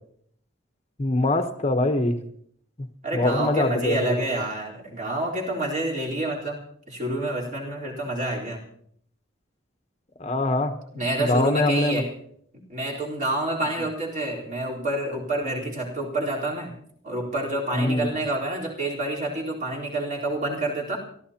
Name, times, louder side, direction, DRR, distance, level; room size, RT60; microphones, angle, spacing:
voice 1, 1.0-2.2 3.1-4.1 10.2-10.7 11.2-12.0 17.7-18.1, left 2 dB, 35° left, 7 dB, 1.0 m, -23 dB
voice 2, 3.0-6.6 6.9-8.6 10.9-12.1 12.7-16.7 17.0-21.0, right 2 dB, 40° right, -3 dB, 4.0 m, -28 dB
29.0 x 14.0 x 2.9 m, 0.64 s
head